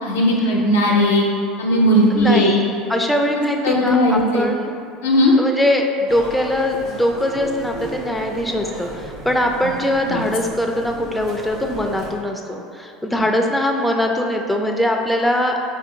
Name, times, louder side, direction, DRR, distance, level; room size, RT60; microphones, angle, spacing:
voice 1, 0.0-1.3 1.6-2.6 3.4-4.5 5.0-5.4 10.1-10.2 13.1-13.2, left 1 dB, 85° left, -3 dB, 0.6 m, -17 dB
voice 2, 2.1-2.6 2.9-4.7 5.4-15.5, left 1 dB, 5° left, 2 dB, 0.4 m, -21 dB
sound 1, 6.1-12.1, right 2 dB, 60° right, 1.0 m, -35 dB
4.6 x 2.5 x 2.8 m, 2.4 s
hypercardioid pair, 80°, 0 cm